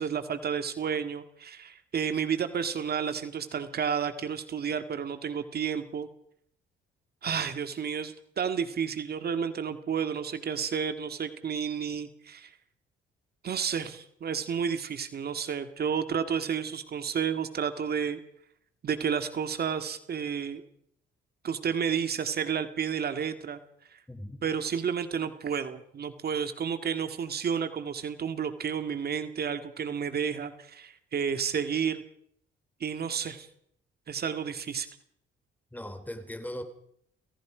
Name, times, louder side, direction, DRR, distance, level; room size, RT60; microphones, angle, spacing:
voice 1, 0.0-6.1 7.2-12.5 13.4-18.2 18.8-20.6 21.4-23.6 23.9-24.0 24.4-32.0 32.8-33.5 34.1-34.9, right 7 dB, 50° right, 9 dB, 2.1 m, -31 dB
voice 2, 24.1-24.4 35.7-36.6, left 1 dB, 10° left, 9 dB, 3.7 m, -38 dB
29.0 x 17.5 x 5.1 m, 0.69 s
cardioid pair, 90°, 20 cm